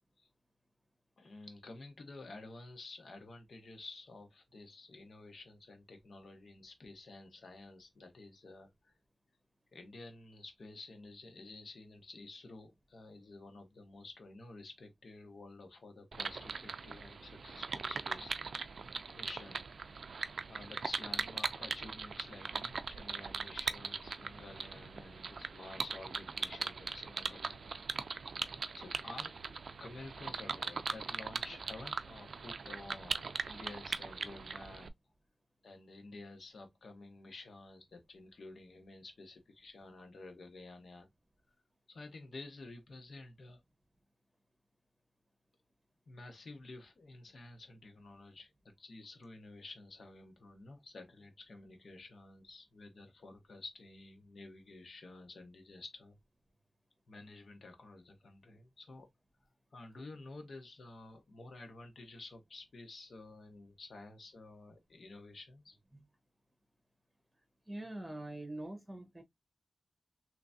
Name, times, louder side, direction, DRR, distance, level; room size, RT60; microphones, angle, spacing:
voice 1, 1.2-8.9 9.7-18.4 19.1-19.7 20.5-27.9 28.7-34.9 35.6-41.1 41.9-43.6 46.1-56.2 57.1-59.1 59.7-65.8, left 2 dB, 75° left, 1.2 m, -51 dB
sound 1, 16.1-34.9, right 5 dB, 80° right, 0.3 m, -40 dB
voice 2, 67.7-69.2, right 1 dB, 15° right, 1.2 m, -44 dB
3.4 x 2.9 x 2.6 m
wide cardioid pair, 80°, 0 cm